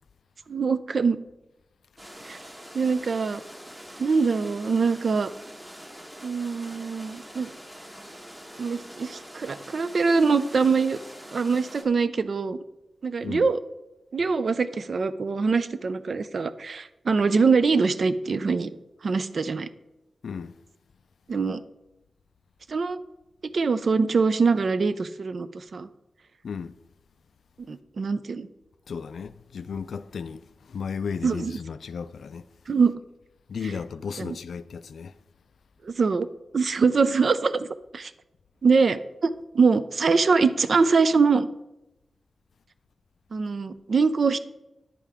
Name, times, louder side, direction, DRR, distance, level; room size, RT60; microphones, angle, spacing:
voice 1, 0.5-1.2 2.3-2.4 2.7-3.4 4.0-5.3 6.2-7.5 8.6-11.0 11.3-12.6 13.0-13.6 14.1-18.7 19.0-19.7 21.3-21.6 22.7-23.0 23.5-25.9 27.6-28.5 31.2-31.5 32.7-32.9 34.2-34.4 35.8-36.3 36.5-37.7 37.9-38.1 38.6-41.5 43.3-44.4, right 4 dB, 50° right, 0.4 m, -23 dB
sound 1, 2.0-11.8, equal, 15° right, 1.2 m, -44 dB
voice 2, 20.2-20.6 26.4-26.8 28.9-32.5 33.5-35.1, left 6 dB, 85° left, 0.3 m, -34 dB
9.9 x 8.3 x 3.5 m
wide cardioid pair, 165°, 0 cm